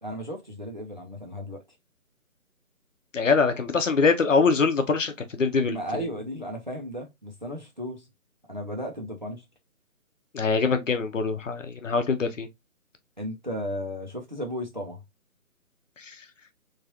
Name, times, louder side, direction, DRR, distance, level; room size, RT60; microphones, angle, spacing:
voice 1, 0.0-1.6 5.6-8.1 8.5-9.4 13.2-15.0, equal, 35° right, 0.5 m, -35 dB
voice 2, 3.1-5.8 10.3-12.5 16.0-16.2, left 4 dB, 60° left, 0.8 m, -23 dB
3.1 x 2.4 x 2.8 m
figure-of-eight pair, 165°, 43 cm